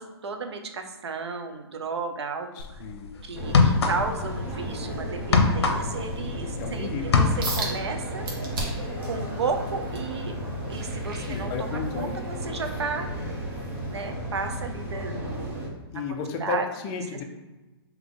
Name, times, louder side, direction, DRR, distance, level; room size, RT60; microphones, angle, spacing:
voice 1, 0.0-2.8 3.2-8.2 9.0-10.4 10.7-13.1 13.9-15.7 16.4-16.7, right 4 dB, 85° right, 5 dB, 0.7 m, -33 dB
sound 1, 2.6-2.8 3.4-4.3 4.6-6.7 7.0-7.7, left 4 dB, 75° left, 0.7 m, -22 dB
voice 2, 2.6-3.1 6.6-7.1 11.3-12.1 15.9-17.2, left 5 dB, 25° left, 3 dB, 0.5 m, -32 dB
sound 2, 3.3-15.7, equal, 15° right, 0.8 m, -34 dB
sound 3, 7.4-7.7 8.2-8.9 9.4-12.0 12.5-12.7 13.3-13.4, right 2 dB, 55° right, 1.2 m, -34 dB
3.8 x 2.9 x 3.8 m, 1.1 s
hypercardioid pair, 150°, 14 cm